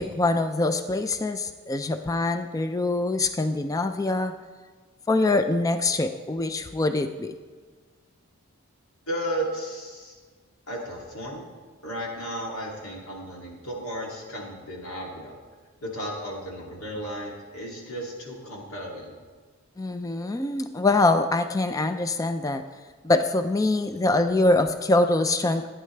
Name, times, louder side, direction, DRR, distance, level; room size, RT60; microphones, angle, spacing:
voice 1, 0.0-4.3 5.1-7.3 19.8-22.6 23.0-25.7, left 2 dB, 15° left, 9 dB, 0.3 m, -24 dB
voice 2, 9.1-10.1 10.7-11.5 11.8-15.4 15.8-19.1, equal, 70° left, -3 dB, 2.6 m, -34 dB
15.5 x 9.3 x 3.3 m, 1.5 s
head